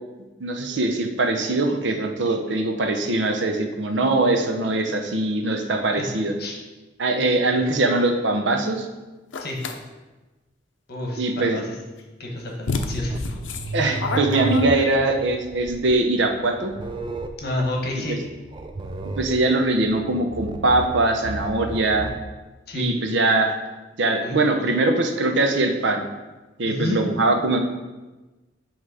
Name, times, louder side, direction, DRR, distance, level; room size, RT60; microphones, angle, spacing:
voice 1, 0.4-6.3 7.0-8.9 11.2-11.6 13.7-16.7 18.1-18.2 19.2-22.1 22.7-23.5 24.0-26.0 26.6-27.6, right 2 dB, 70° right, 4 dB, 0.7 m, -22 dB
sound 1, 9.3-9.8 12.0-12.1 12.7-15.2, left 3 dB, 85° left, 0.6 m, -28 dB
voice 2, 10.9-11.7 12.2-13.2 17.4-18.2 22.7-22.9 24.2-24.4 26.6-27.0, left 1 dB, 60° left, -1 dB, 1.2 m, -29 dB
sound 2, 13.1-22.3, right 2 dB, 25° right, 0.4 m, -34 dB
7.5 x 3.2 x 4.8 m, 1.2 s
head